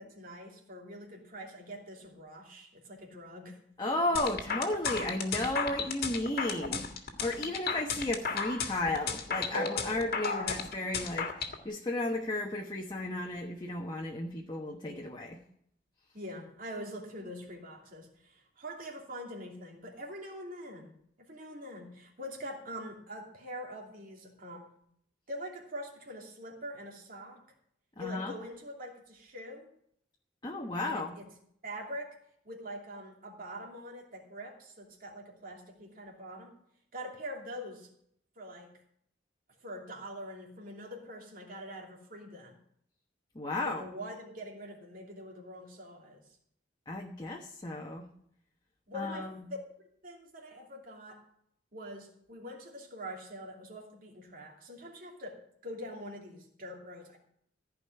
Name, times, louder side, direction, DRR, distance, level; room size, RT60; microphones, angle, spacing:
voice 1, 0.0-3.6 10.2-10.5 16.1-20.9 21.3-24.7 25.3-27.4 28.0-29.7 30.8-31.3 31.6-32.2 32.4-36.5 36.9-37.9 38.4-38.7 39.6-42.6 43.6-46.2 48.9-49.3 50.0-51.2 51.7-57.2, equal, 50° right, 0 dB, 2.8 m, -44 dB
voice 2, 3.8-6.8 7.2-15.4 28.0-28.3 30.4-31.2 43.3-43.8 46.9-48.0 48.9-49.5, left 2 dB, 25° left, 0 dB, 1.1 m, -34 dB
sound 1, 4.2-11.5, left 5 dB, 55° left, 1.7 m, -33 dB
15.0 x 5.2 x 9.5 m, 0.68 s
head